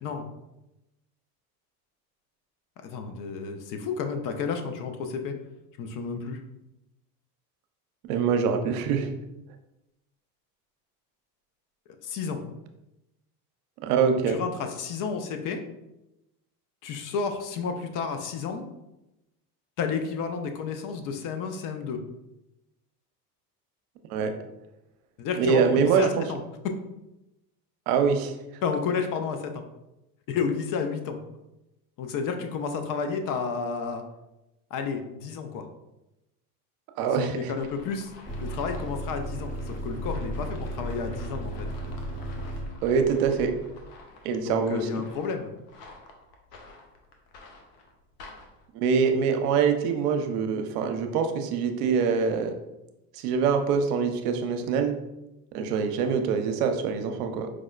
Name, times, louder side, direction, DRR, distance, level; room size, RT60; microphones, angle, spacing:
voice 1, 2.8-5.4 5.8-6.4 12.0-12.4 14.3-15.6 16.8-18.7 19.8-22.0 25.2-26.4 28.6-29.6 30.3-31.2 32.0-34.0 34.7-35.7 37.1-41.7 44.4-45.5, left 5 dB, 45° left, 6 dB, 0.5 m, -31 dB
voice 2, 8.0-9.1 13.8-14.4 24.1-24.3 25.4-26.1 27.9-28.3 37.0-37.4 42.8-43.5 44.2-44.9 48.7-52.5 53.1-55.0 55.5-57.5, right 6 dB, 70° right, 6 dB, 0.6 m, -24 dB
sound 1, 37.6-48.7, left 2 dB, 85° left, 0.7 m, -44 dB
sound 2, 38.3-42.7, right 1 dB, 15° left, 0.8 m, -35 dB
4.7 x 2.1 x 2.3 m, 0.93 s
hypercardioid pair, 85°, 47 cm